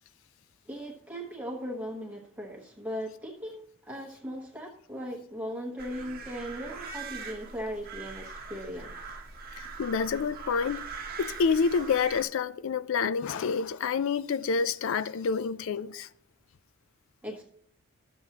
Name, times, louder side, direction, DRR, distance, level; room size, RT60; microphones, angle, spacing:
voice 1, 0.7-9.1 17.2-17.4, equal, 5° right, 1.1 m, -38 dB
sound 1, 5.8-12.2, right 4 dB, 40° right, 0.9 m, -42 dB
voice 2, 9.6-10.9 11.2-16.1, left 5 dB, 60° left, 0.3 m, -28 dB
12.0 x 7.0 x 2.9 m
head